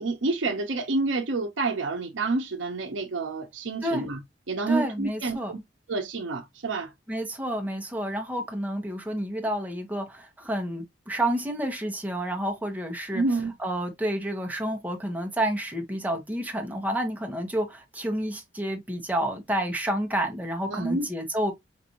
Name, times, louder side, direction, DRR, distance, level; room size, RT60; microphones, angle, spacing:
voice 1, 0.0-4.2 4.5-5.6 5.9-6.9 13.1-13.5 20.7-21.1, right 3 dB, 90° right, 0.7 m, -28 dB
voice 2, 4.7-5.5 7.1-13.2 13.6-21.5, right 1 dB, 10° right, 0.9 m, -29 dB
5.2 x 2.5 x 2.8 m
head